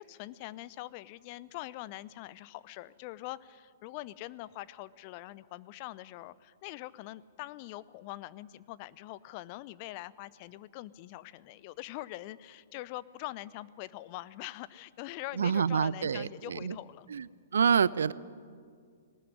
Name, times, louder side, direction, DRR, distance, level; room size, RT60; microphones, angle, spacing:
voice 1, 0.0-17.1, left 16 dB, 40° left, 19 dB, 0.6 m, -43 dB
voice 2, 15.4-16.8 17.1-17.3 17.5-18.1, right 6 dB, 65° right, 20 dB, 0.6 m, -27 dB
19.0 x 18.5 x 9.8 m, 2.1 s
figure-of-eight pair, 115°, 0 cm